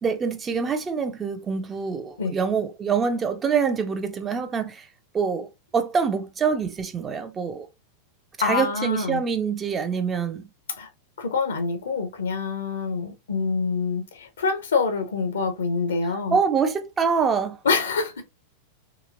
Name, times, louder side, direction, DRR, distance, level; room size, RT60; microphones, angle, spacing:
voice 1, 0.0-4.9 5.1-7.7 8.4-10.5 16.3-17.6, right 6 dB, 20° right, 0.4 m, -25 dB
voice 2, 8.4-9.2 10.8-10.9 11.2-16.4 17.6-18.2, left 4 dB, 65° left, 0.7 m, -26 dB
3.0 x 2.7 x 2.5 m
figure-of-eight pair, 90°, 0 cm